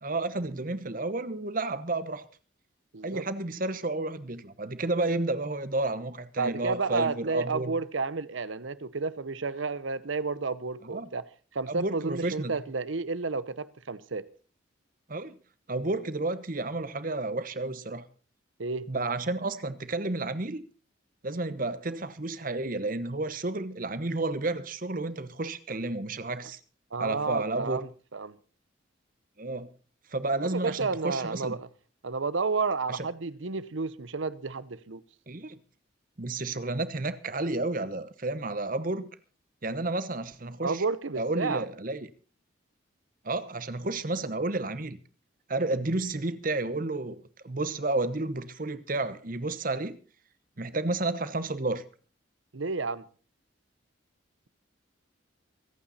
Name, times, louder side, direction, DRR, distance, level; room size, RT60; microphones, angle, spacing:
voice 1, 0.0-2.3 3.0-7.7 10.8-11.1 11.7-12.6 15.1-15.4 15.7-18.0 18.9-20.6 21.2-26.6 27.0-27.8 29.4-29.7 30.1-31.6 32.9-33.1 35.3-35.6 36.2-39.0 39.6-40.8 41.2-42.1 43.2-45.0 45.5-50.0 50.6-51.8, right 2 dB, 45° right, 1.0 m, -31 dB
voice 2, 2.9-3.2 6.4-11.2 11.5-14.3 18.6-18.9 26.9-28.4 30.4-31.7 32.0-35.0 40.6-41.6 52.5-53.0, right 4 dB, 80° right, 0.9 m, -31 dB
24.5 x 8.9 x 4.2 m
head